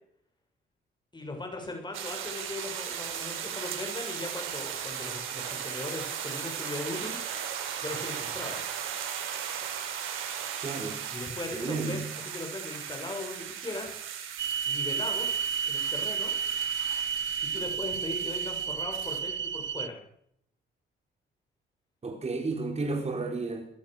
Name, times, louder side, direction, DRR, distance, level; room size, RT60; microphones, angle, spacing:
voice 1, 1.1-7.2 7.8-8.6 11.1-12.0 12.3-14.0 14.7-16.3 17.5-20.0, left 2 dB, 20° left, 2 dB, 7.7 m, -38 dB
sound 1, 1.9-19.2, right 8 dB, 90° right, 6.1 m, -37 dB
voice 2, 10.6-11.0 11.5-12.1 22.0-23.7, right 3 dB, 30° right, 4 dB, 4.4 m, -32 dB
sound 2, 14.4-19.9, right 7 dB, 65° right, 1.4 m, -31 dB
27.5 x 22.5 x 6.9 m, 0.74 s
cardioid pair, 90°, 20 cm